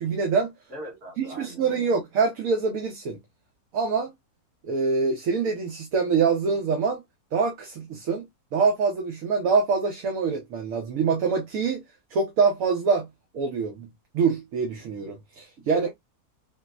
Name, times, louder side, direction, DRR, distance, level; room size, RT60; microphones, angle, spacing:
voice 1, 0.0-0.5 1.2-3.2 3.7-4.1 4.7-7.0 7.3-8.3 8.5-11.8 12.1-13.1 13.3-13.9 14.1-15.9, right 5 dB, 65° right, 1.0 m, -25 dB
voice 2, 0.7-1.9 15.6-15.9, equal, 50° right, 1.6 m, -40 dB
4.4 x 2.0 x 2.3 m
omnidirectional pair, 1.6 m